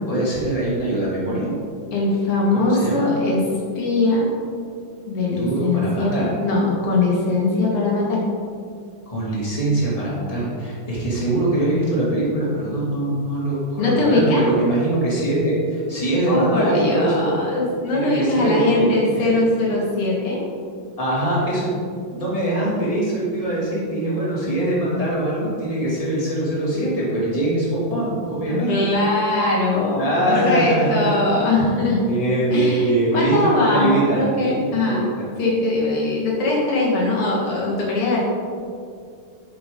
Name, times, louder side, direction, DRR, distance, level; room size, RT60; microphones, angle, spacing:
voice 1, 0.0-1.6 2.5-3.1 5.3-6.3 9.1-17.3 17.9-19.3 21.0-21.7 22.1-28.8 29.9-31.1 32.1-35.3, right 1 dB, 15° left, -7 dB, 2.5 m, -23 dB
voice 2, 1.9-3.5 3.8-4.3 5.0-6.1 6.4-8.2 13.8-14.5 16.3-20.5 28.5-32.0 32.5-35.1 35.4-38.3, left 2 dB, 85° left, -4 dB, 2.8 m, -21 dB
9.3 x 7.9 x 3.8 m, 2.3 s
omnidirectional pair, 2.4 m